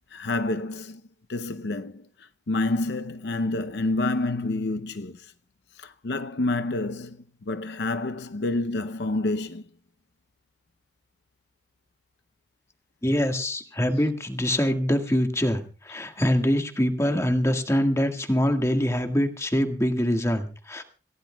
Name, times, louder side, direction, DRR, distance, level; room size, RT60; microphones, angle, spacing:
voice 1, 0.1-1.0 1.3-5.3 5.8-9.6 13.9-14.1, left 2 dB, 70° left, 0.6 m, -28 dB
voice 2, 13.0-20.8, equal, 15° left, 1.6 m, -24 dB
27.0 x 16.5 x 2.3 m
head